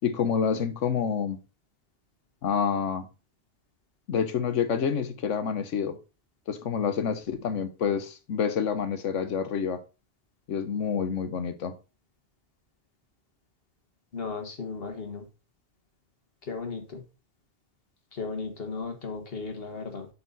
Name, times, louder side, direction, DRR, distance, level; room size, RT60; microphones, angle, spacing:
voice 1, 0.0-1.4 2.4-3.1 4.1-6.0 6.5-9.8 10.5-11.7, left 7 dB, 90° left, 1.2 m, -28 dB
voice 2, 14.1-15.3 16.4-17.0 18.1-20.1, left 4 dB, 55° left, 1.5 m, -35 dB
8.2 x 4.4 x 3.9 m
omnidirectional pair, 1.2 m